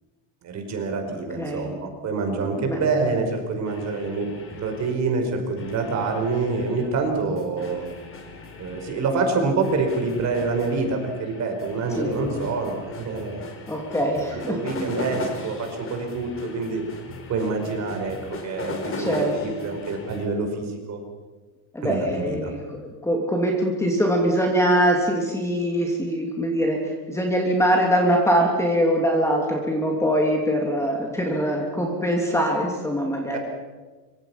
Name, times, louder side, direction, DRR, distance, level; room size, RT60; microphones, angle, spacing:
voice 1, 0.4-4.3 4.6-7.9 8.6-13.4 14.3-16.8 17.3-21.0 21.8-22.5 33.3-33.4, right 3 dB, 35° right, 4 dB, 4.9 m, -26 dB
voice 2, 1.4-1.7 2.6-2.8 12.0-12.1 13.7-14.6 19.0-19.3 21.7-33.4, equal, 5° left, 0 dB, 2.7 m, -23 dB
sound 1, 3.6-5.2 5.5-20.3, left 3 dB, 25° left, 4.1 m, -38 dB
25.0 x 24.5 x 5.8 m, 1.3 s
cardioid pair, 165°, 46 cm